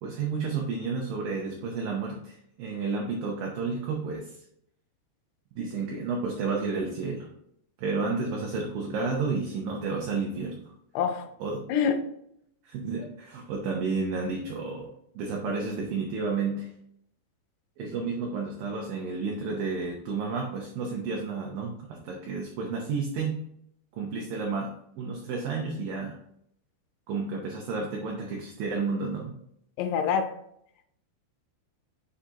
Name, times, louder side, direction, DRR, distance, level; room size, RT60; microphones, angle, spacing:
voice 1, 0.0-4.4 5.6-7.3 7.8-10.6 11.4-11.6 12.6-16.7 17.8-23.4 24.0-24.7 25.0-26.2 27.1-29.3, right 4 dB, 75° right, -1 dB, 2.1 m, -31 dB
voice 2, 11.0-11.3 11.7-12.0 29.8-30.3, left 7 dB, 80° left, 6 dB, 2.5 m, -25 dB
7.8 x 4.9 x 2.9 m, 0.73 s
omnidirectional pair, 5.1 m